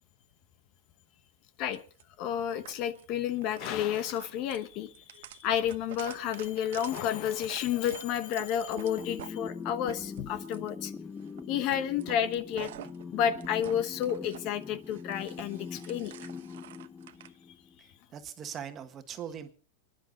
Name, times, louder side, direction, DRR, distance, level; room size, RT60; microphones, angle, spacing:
sound 1, 1.7-2.0 2.6-3.0 3.4-9.3 9.7-10.7 11.2-11.4 11.7-14.4 14.7-17.3, right 13 dB, 75° right, 0.9 m, -47 dB
voice 1, 2.2-10.9 11.5-12.7 13.1-16.3 17.8-17.9, left 10 dB, 40° left, 13 dB, 1.0 m, -31 dB
sound 2, 8.8-17.8, left 5 dB, 10° left, 0.7 m, -43 dB
voice 2, 17.8-19.5, right 8 dB, 25° right, 8 dB, 1.6 m, -41 dB
27.5 x 10.5 x 4.0 m, 0.38 s
supercardioid pair, 160°, 0 cm